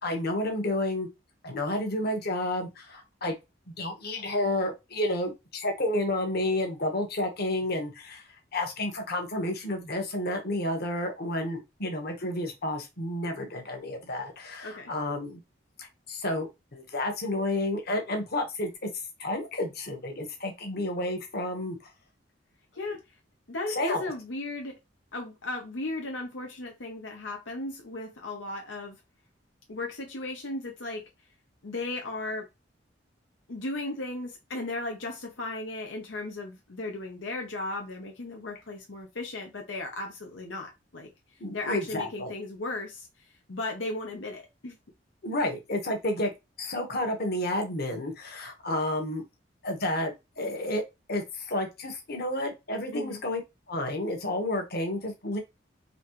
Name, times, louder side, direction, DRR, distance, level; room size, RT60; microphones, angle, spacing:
voice 1, 0.0-1.1 1.4-3.4 3.7-8.2 8.5-15.4 15.8-18.9 19.2-21.8 22.9-23.0 23.7-24.1 41.4-42.3 45.2-46.3 46.6-49.2 49.6-50.8 51.1-53.4 53.7-55.4, left 1 dB, 55° left, 1.4 m, -31 dB
voice 2, 23.5-24.8 25.1-29.0 29.7-31.0 31.6-32.5 33.5-41.1 41.5-43.1 43.5-44.8 52.9-53.2, left 2 dB, 80° left, 0.9 m, -36 dB
4.2 x 3.3 x 3.1 m
head